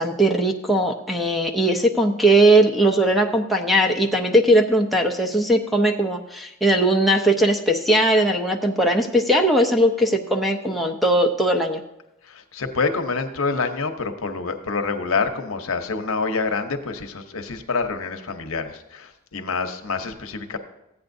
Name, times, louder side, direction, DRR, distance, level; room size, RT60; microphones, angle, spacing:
voice 1, 0.0-11.8, right 1 dB, ahead, 2 dB, 0.6 m, -19 dB
voice 2, 12.2-20.6, left 4 dB, 80° left, 6 dB, 0.8 m, -27 dB
14.5 x 8.7 x 2.6 m, 0.89 s
head